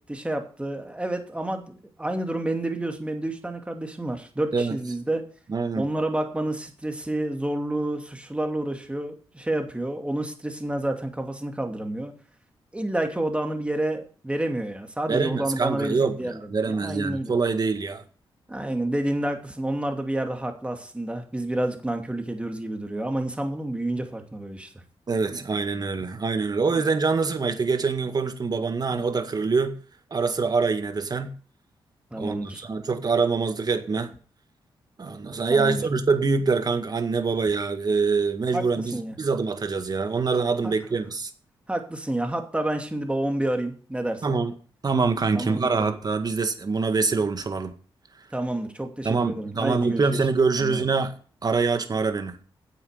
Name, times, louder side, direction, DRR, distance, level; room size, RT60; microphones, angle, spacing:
voice 1, 0.1-5.2 5.8-12.1 12.7-17.3 18.5-24.7 32.1-32.6 35.5-35.8 38.5-38.7 38.9-39.2 40.6-40.7 41.7-44.2 45.3-45.9 48.3-50.1 50.6-50.8, right 1 dB, 10° right, 2.6 m, -29 dB
voice 2, 5.5-5.9 15.1-16.1 16.5-18.0 25.1-29.8 30.1-31.3 32.2-34.1 35.0-41.3 44.2-44.5 44.8-47.7 49.0-51.1 51.4-52.3, right 4 dB, 45° right, 1.9 m, -24 dB
9.7 x 7.8 x 6.7 m
cardioid pair, 70°, 10 cm